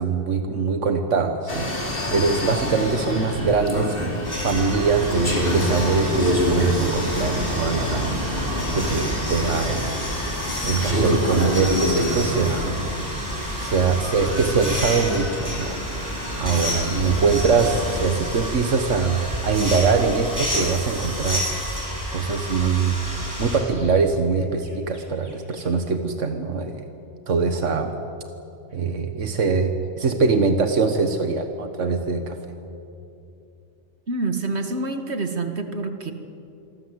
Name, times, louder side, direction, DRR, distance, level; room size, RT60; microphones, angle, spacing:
voice 1, 0.0-4.0 4.4-8.4 8.7-9.9 10.6-12.8 13.6-15.8 16.4-21.5 22.1-23.0 23.4-26.9 27.3-27.9 28.7-32.4, right 4 dB, 90° right, 6 dB, 1.7 m, -23 dB
sound 1, 1.5-18.1, left 1 dB, 50° left, 3.9 m, -27 dB
sound 2, 4.2-23.6, equal, 15° right, 6.2 m, -30 dB
sound 3, 11.4-12.1 13.0-15.1 16.1-17.1 18.0-19.4 20.8-22.7 23.0-24.0 24.3-25.8, equal, 90° left, 6.8 m, -49 dB
voice 2, 34.1-36.1, right 3 dB, 65° right, 6 dB, 2.2 m, -27 dB
27.0 x 23.5 x 8.0 m, 2.7 s
omnidirectional pair, 1.2 m